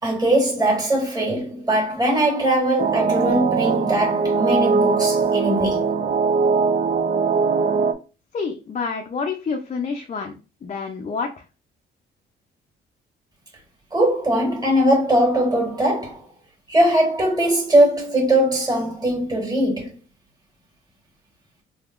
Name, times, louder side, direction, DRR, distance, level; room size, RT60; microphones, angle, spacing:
voice 1, 0.0-5.8 13.9-16.2 16.7-19.9, right 1 dB, 20° right, 1.8 m, -20 dB
sound 1, 2.8-7.9, right 5 dB, 40° right, 0.4 m, -20 dB
voice 2, 8.3-10.3 10.6-11.4, left 5 dB, 35° left, 0.5 m, -28 dB
3.5 x 2.7 x 2.5 m
cardioid pair, 90°, 20 cm